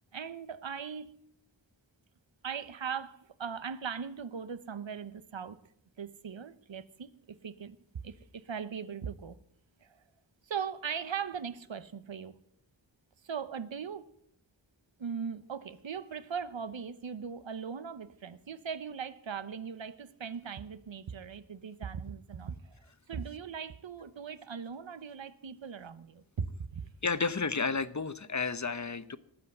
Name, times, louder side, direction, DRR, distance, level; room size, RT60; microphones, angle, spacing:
voice 1, 0.1-1.1 2.4-5.6 6.0-7.8 8.0-9.4 9.8-10.0 10.5-12.4 13.2-14.1 15.0-26.2 26.7-26.8, right 7 dB, 85° right, 14 dB, 0.9 m, -39 dB
voice 2, 27.0-29.2, left 4 dB, 40° left, 13 dB, 0.9 m, -31 dB
19.0 x 7.9 x 7.9 m, 0.72 s
wide cardioid pair, 50°, 45 cm